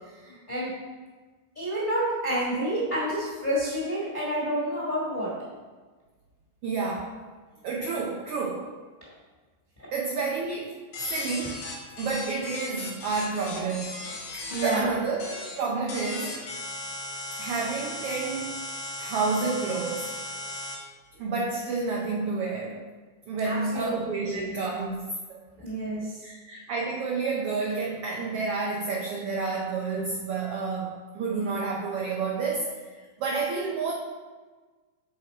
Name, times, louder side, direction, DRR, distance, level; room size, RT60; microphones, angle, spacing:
voice 1, 0.2-0.7 1.5-5.3 14.5-14.9 23.4-23.9 24.2-24.5 25.6-26.2, right 1 dB, 30° left, -8 dB, 0.9 m, -29 dB
voice 2, 6.6-7.1 7.6-8.7 9.9-11.6 12.0-14.0 14.3-15.2 15.6-16.4 17.4-18.5 19.0-20.2 21.2-22.8 23.3-25.0 25.3-25.4 26.2-33.9, right 4 dB, 85° right, -2 dB, 1.2 m, -30 dB
sound 1, 10.9-14.7 15.2-15.5 15.9-20.7, left 2 dB, 75° left, 1.0 m, -37 dB
6.8 x 4.4 x 3.9 m, 1.4 s
omnidirectional pair, 3.4 m